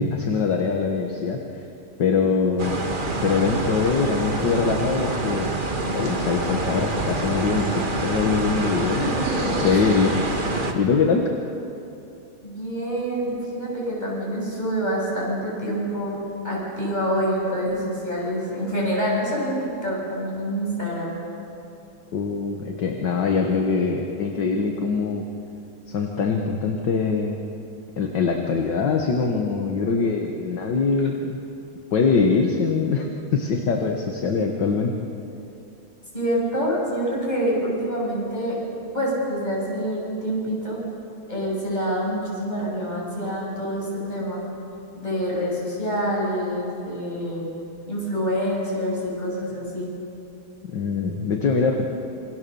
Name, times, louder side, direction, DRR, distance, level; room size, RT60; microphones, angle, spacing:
voice 1, 0.0-1.4 2.0-2.8 3.2-5.5 5.9-9.0 9.4-10.1 10.8-11.3 22.1-25.3 25.9-27.4 28.0-31.4 31.9-33.1 33.3-34.9 50.6-51.9, left 5 dB, 60° left, 2 dB, 2.0 m, -23 dB
sound 1, 2.6-10.7, right 2 dB, 25° right, 1.6 m, -26 dB
voice 2, 9.0-9.8 12.4-16.2 16.4-21.2 36.1-40.8 41.3-44.4 45.0-47.5 47.9-49.9, equal, 20° left, -4 dB, 7.2 m, -26 dB
28.0 x 23.0 x 7.1 m, 2.8 s
omnidirectional pair, 2.3 m